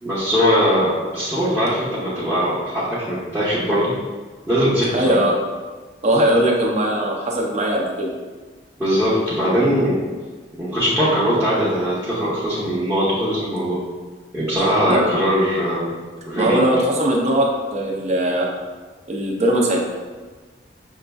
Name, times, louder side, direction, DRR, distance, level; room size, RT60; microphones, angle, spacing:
voice 1, 0.0-3.9 4.5-5.2 8.8-10.0 10.6-13.8 14.3-15.9 16.3-16.6, equal, 10° right, -11 dB, 0.9 m, -20 dB
voice 2, 4.9-5.4 6.0-8.1 14.9-15.0 16.4-18.5 19.1-19.8, right 1 dB, 40° right, -1 dB, 0.6 m, -19 dB
6.3 x 2.5 x 2.3 m, 1.4 s
head